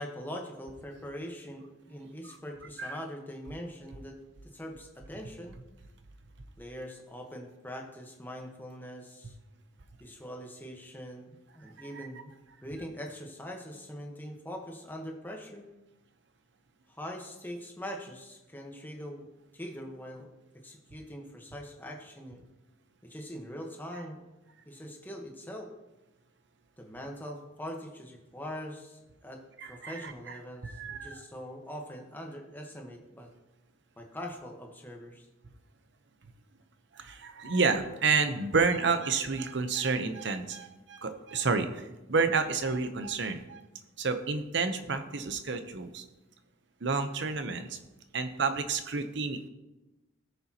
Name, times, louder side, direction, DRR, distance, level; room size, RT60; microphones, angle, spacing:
voice 1, 0.0-4.2 4.4-5.5 6.6-9.4 10.0-12.3 12.6-15.7 16.9-19.3 19.5-20.3 20.6-22.4 23.0-24.2 24.7-25.7 26.8-29.4 29.7-33.3 34.0-35.3, equal, 10° left, 1 dB, 1.2 m, -42 dB
voice 2, 29.6-30.3 30.6-31.2 36.9-43.6 44.0-46.0 46.8-47.8 48.1-49.5, right 4 dB, 65° right, 9 dB, 0.8 m, -30 dB
17.0 x 6.9 x 2.9 m, 1.0 s
head